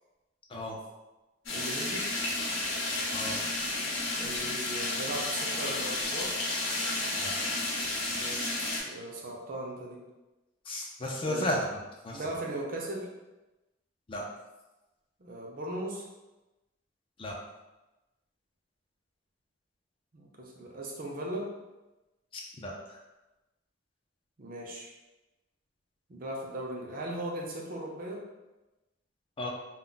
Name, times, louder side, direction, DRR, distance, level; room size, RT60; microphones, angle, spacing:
sound 1, 1.5-8.8, left 2 dB, 85° left, 0.8 m, -32 dB
voice 1, 1.5-2.1 4.2-6.3 8.1-10.0 11.2-11.6 12.1-13.1 15.2-16.1 20.1-21.5 24.4-24.9 26.1-28.2, right 1 dB, 50° right, -2 dB, 0.5 m, -38 dB
voice 2, 10.7-11.7 12.0-12.4 14.1-14.2 17.2-17.4 22.3-23.0 29.4-29.5, left 1 dB, 30° left, -2 dB, 0.4 m, -34 dB
2.2 x 2.0 x 3.8 m, 1.1 s
head